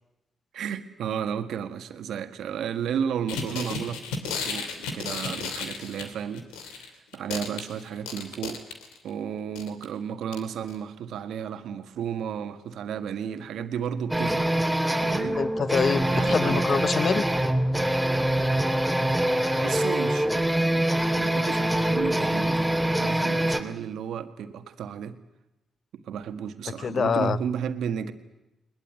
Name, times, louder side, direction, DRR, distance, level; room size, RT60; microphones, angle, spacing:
voice 1, 0.5-4.0 4.4-6.5 6.7-8.6 9.0-14.5 15.0-15.4 16.1-16.8 19.6-20.9 21.2-25.2 25.9-28.1, right 8 dB, 75° right, 10 dB, 1.7 m, -33 dB
sound 1, 3.3-6.9 7.1-9.1 9.6-9.8 10.3-10.4 10.7-10.8, left 5 dB, 85° left, 2.6 m, -33 dB
sound 2, 14.1-23.6, right 1 dB, ahead, 3.3 m, -24 dB
voice 2, 15.4-17.2 26.7-27.4, left 6 dB, 55° left, 18 dB, 0.9 m, -25 dB
21.5 x 20.5 x 9.5 m, 0.91 s
hypercardioid pair, 40°, 0 cm